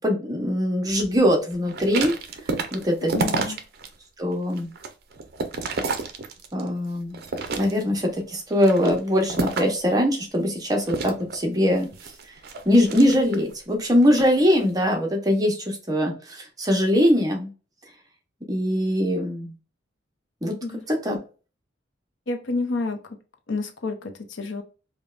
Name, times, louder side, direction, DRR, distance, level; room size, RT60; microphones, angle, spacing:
voice 1, 0.0-2.1 2.7-3.1 4.2-4.7 6.5-7.2 7.6-11.9 12.7-17.5 18.5-19.5 20.4-20.6 20.9-21.2, equal, 20° right, 2 dB, 0.7 m, -22 dB
sound 1, 1.7-3.9 4.3-6.7 7.1-8.0 8.5-9.9 10.9-13.5 14.0-14.3, right 3 dB, 55° right, 0.5 m, -30 dB
voice 2, 3.1-3.6 20.6-20.8 22.3-23.0 23.5-24.6, left 3 dB, 75° left, 5 dB, 0.6 m, -29 dB
5.1 x 2.2 x 2.4 m, 0.35 s
head